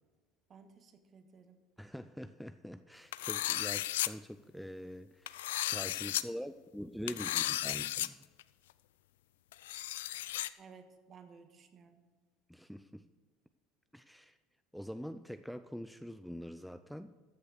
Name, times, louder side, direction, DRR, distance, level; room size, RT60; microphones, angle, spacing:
voice 1, 0.5-1.6 10.6-12.1, right 5 dB, 40° right, 8 dB, 1.7 m, -57 dB
voice 2, 1.8-8.2 12.5-13.1 13.9-14.4 14.7-17.1, equal, ahead, 11 dB, 0.5 m, -44 dB
sound 1, 3.1-4.1 5.3-6.2 7.1-8.1 8.4-8.5 9.5-10.5, left 14 dB, 90° left, 0.4 m, -34 dB
14.0 x 6.6 x 6.6 m, 1.4 s
supercardioid pair, 95°, 0 cm